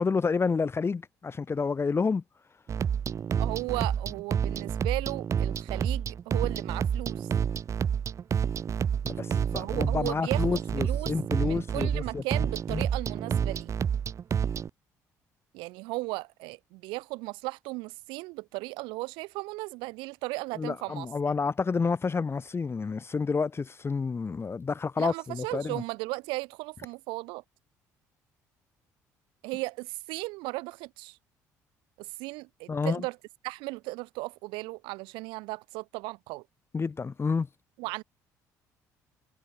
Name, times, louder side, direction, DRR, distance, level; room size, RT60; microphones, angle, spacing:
voice 1, 0.0-2.2 9.0-12.2 12.7-12.8 20.6-25.8 32.7-33.0 36.7-37.5, left 5 dB, 30° left, 1.0 m, -29 dB
sound 1, 2.7-14.7, right 8 dB, 35° right, 0.4 m, -29 dB
voice 2, 3.4-7.3 9.5-11.1 11.4-13.7 15.5-21.1 25.0-27.4 29.4-31.2 32.0-33.2 33.4-36.5 37.8-38.0, right 24 dB, 75° right, 3.0 m, -36 dB
hypercardioid pair, 55°, 8 cm